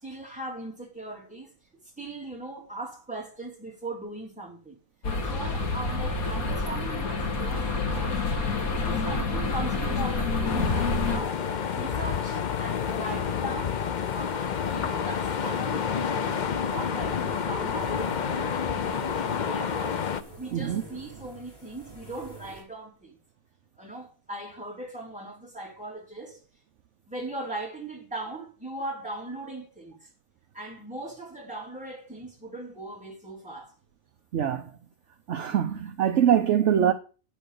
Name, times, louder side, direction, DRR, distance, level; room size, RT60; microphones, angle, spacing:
voice 1, 0.0-1.6 2.0-4.8 5.2-8.5 8.8-11.4 11.7-13.8 14.1-23.2 23.8-26.4 27.1-30.1 30.5-33.7, right 2 dB, 5° right, 3.0 m, -39 dB
sound 1, 5.0-11.2, left 3 dB, 85° left, 2.0 m, -28 dB
sound 2, 9.4-22.6, right 2 dB, 15° left, 7.4 m, -48 dB
sound 3, 10.4-20.2, left 7 dB, 50° left, 0.5 m, -29 dB
voice 2, 20.5-20.8 34.3-34.7 35.3-36.9, right 9 dB, 60° right, 1.0 m, -23 dB
8.9 x 6.3 x 6.7 m
omnidirectional pair, 1.5 m